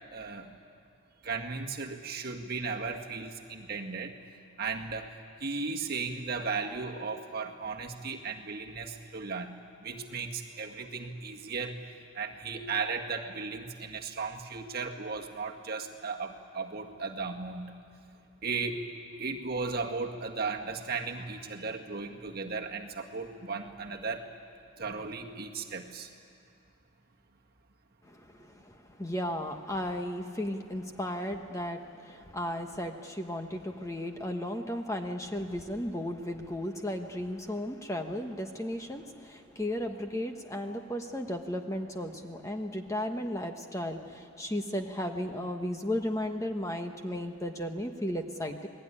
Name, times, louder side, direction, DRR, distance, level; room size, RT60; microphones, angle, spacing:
voice 1, 0.1-0.5 1.2-4.1 4.6-5.1 5.4-11.8 12.1-17.7 18.4-18.9 19.2-24.3 24.8-26.1, right 4 dB, 45° right, 2 dB, 1.8 m, -36 dB
voice 2, 28.0-48.7, left 1 dB, 15° left, 5 dB, 1.1 m, -35 dB
28.5 x 20.0 x 10.0 m, 2.4 s
head